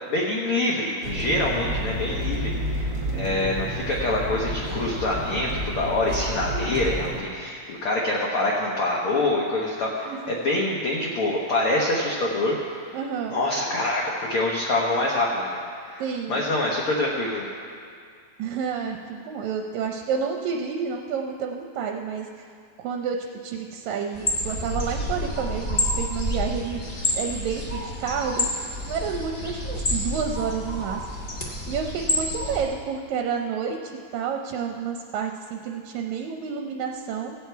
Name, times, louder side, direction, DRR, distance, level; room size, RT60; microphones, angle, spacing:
voice 1, 0.1-13.0 13.3-17.5, left 2 dB, 60° left, -3 dB, 1.6 m, -26 dB
sound 1, 1.0-7.2, equal, 30° right, 2.0 m, -30 dB
voice 2, 12.9-13.4 16.0-16.5 18.4-22.3 22.8-23.2 23.4-26.8 27.1-28.5 28.8-31.1 31.7-37.4, right 6 dB, 75° right, 2 dB, 1.9 m, -30 dB
sound 2, 24.1-32.6, left 1 dB, 40° left, 0.8 m, -29 dB
16.0 x 8.1 x 4.6 m, 2.3 s
omnidirectional pair, 3.7 m